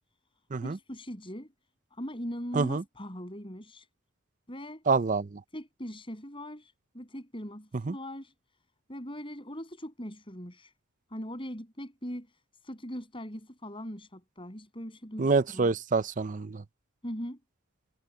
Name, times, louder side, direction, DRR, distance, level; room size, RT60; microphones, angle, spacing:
voice 1, 0.6-1.5 1.9-3.9 4.5-4.8 5.5-8.3 8.9-10.7 11.1-12.3 12.6-15.7 17.0-17.4, equal, 25° left, 7.6 m, -40 dB
voice 2, 2.5-2.8 4.9-5.4 7.8-7.9 15.2-16.6, right 4 dB, 35° right, 0.5 m, -27 dB
head